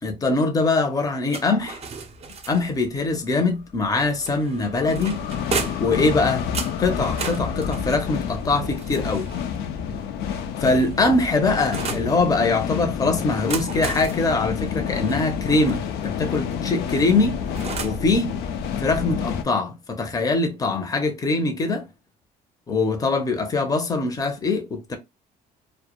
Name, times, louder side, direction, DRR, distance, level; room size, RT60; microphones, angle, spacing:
voice 1, 0.0-1.8 2.5-5.2 5.8-6.5 6.8-9.3 10.6-17.4 17.8-18.4 18.8-21.9 22.7-25.0, left 3 dB, 20° left, 0.5 m, -22 dB
sound 1, 1.3-2.9 4.2-6.0 6.5-9.5 10.3-12.1 13.2-15.8 16.9-18.1, right 5 dB, 40° right, 0.5 m, -35 dB
sound 2, 2.1-2.2 3.6-19.4, left 7 dB, 75° left, 0.4 m, -29 dB
2.1 x 2.1 x 2.9 m
cardioid pair, 110°, 17 cm